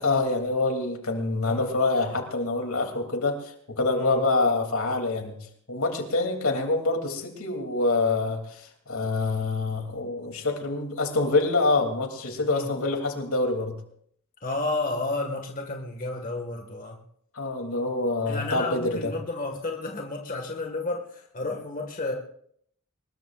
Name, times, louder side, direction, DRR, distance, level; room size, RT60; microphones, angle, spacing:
voice 1, 0.0-5.4 5.7-13.8 17.3-19.1, left 3 dB, 85° left, 3 dB, 3.2 m, -26 dB
voice 2, 1.4-1.8 4.0-4.2 12.4-12.7 14.4-17.0 18.3-22.1, left 2 dB, 40° left, 1 dB, 1.9 m, -32 dB
23.5 x 21.0 x 2.6 m, 0.65 s
head